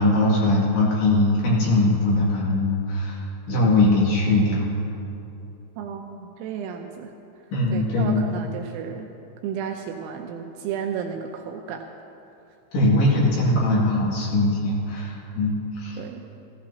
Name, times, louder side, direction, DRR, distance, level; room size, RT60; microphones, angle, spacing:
voice 1, 0.0-4.7 7.5-8.2 12.7-16.0, left 2 dB, 60° left, -5 dB, 3.7 m, -21 dB
voice 2, 5.8-7.1 7.7-9.1 9.4-11.9 16.0-16.3, right 7 dB, 85° right, 3 dB, 2.8 m, -33 dB
15.5 x 15.5 x 2.8 m, 2.8 s
omnidirectional pair, 5.7 m